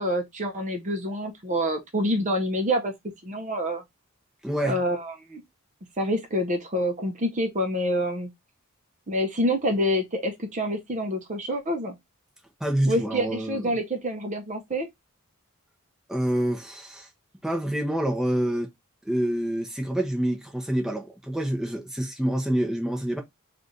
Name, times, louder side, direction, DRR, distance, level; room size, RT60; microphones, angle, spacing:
voice 1, 0.0-2.9 3.2-3.8 4.6-5.4 6.0-8.3 9.1-11.9 12.9-14.9, equal, 35° right, 0.7 m, -27 dB
voice 2, 4.4-4.8 12.6-13.7 16.1-17.1 17.4-18.7 19.0-23.2, right 1 dB, ahead, 0.7 m, -27 dB
3.2 x 2.5 x 3.8 m
head